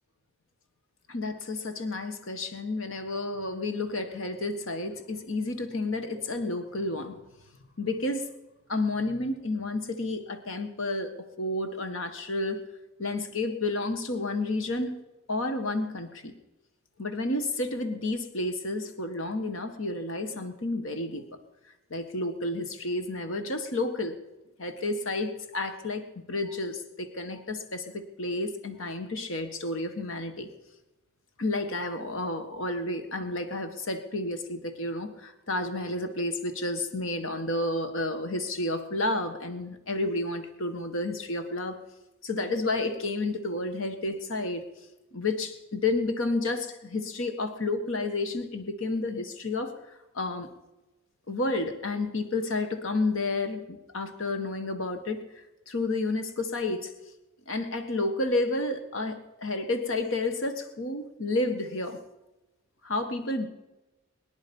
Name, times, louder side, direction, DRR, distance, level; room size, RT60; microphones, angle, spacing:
voice 1, 1.1-7.2 7.8-8.2 8.7-11.1 11.4-12.6 13.0-14.9 15.3-16.3 17.0-21.2 21.9-24.2 24.6-30.5 31.4-41.8 42.2-44.6 45.1-49.7 50.1-50.5 51.3-55.2 55.7-56.9 57.5-62.0 62.8-63.5, left 2 dB, 65° left, 8 dB, 1.5 m, -31 dB
23.0 x 10.5 x 5.4 m, 1.0 s
head